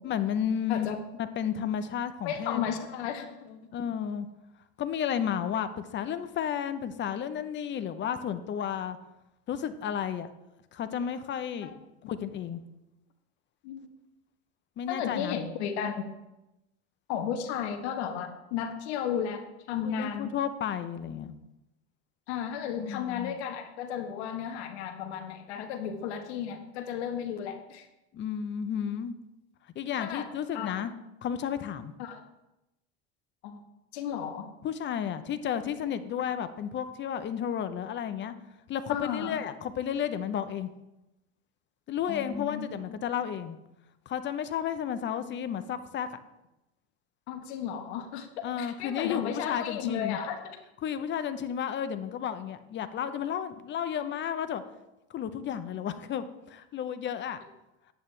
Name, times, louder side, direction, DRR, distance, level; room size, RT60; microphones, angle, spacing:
voice 1, 0.0-2.6 3.7-4.3 4.8-9.0 9.5-10.3 10.7-11.7 12.1-12.6 14.8-15.4 19.8-21.3 22.8-23.4 28.1-29.2 29.8-30.9 31.2-31.9 34.6-38.3 38.7-40.7 41.9-43.6 44.1-46.1 48.4-50.2 50.8-54.6 55.1-57.4, left 9 dB, 35° left, 11 dB, 0.7 m, -32 dB
voice 2, 2.2-3.6 11.6-11.7 13.6-13.9 14.9-16.0 17.1-20.3 22.3-27.9 30.0-30.3 30.5-30.7 32.0-32.2 33.4-33.6 33.9-34.5 38.9-39.4 42.1-42.7 47.3-50.6, left 8 dB, 75° left, 7 dB, 1.3 m, -34 dB
10.0 x 8.9 x 3.3 m, 0.94 s
supercardioid pair, 105°, 33 cm